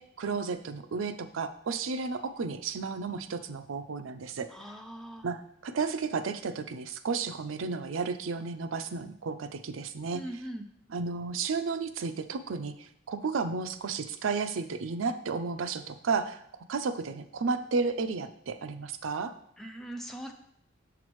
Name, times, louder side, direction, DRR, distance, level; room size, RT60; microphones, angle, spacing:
voice 1, 0.0-4.5 5.2-10.2 10.9-16.4 16.7-19.3, right 4 dB, 85° right, 10 dB, 0.5 m, -33 dB
voice 2, 4.5-5.3 10.1-10.7 19.6-20.3, right 1 dB, ahead, 2 dB, 0.5 m, -41 dB
7.1 x 5.9 x 3.1 m, 0.71 s
head